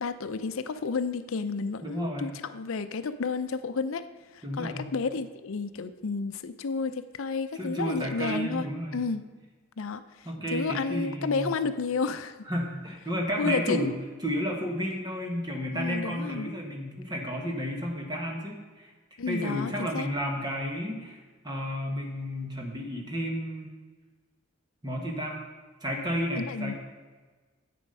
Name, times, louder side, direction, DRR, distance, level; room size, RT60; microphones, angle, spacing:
voice 1, 0.0-4.1 4.3-8.7 8.9-9.2 9.8-12.4 13.4-13.9 15.7-16.5 19.2-20.1 26.4-26.7, left 4 dB, 75° left, 11 dB, 0.5 m, -31 dB
voice 2, 1.8-2.3 4.4-4.9 7.5-9.0 10.2-11.5 12.5-13.9 14.2-18.9 19.3-21.2 21.4-23.7 24.8-25.4 25.8-26.7, equal, 20° right, 0 dB, 1.5 m, -32 dB
10.5 x 8.5 x 5.4 m, 1.3 s
head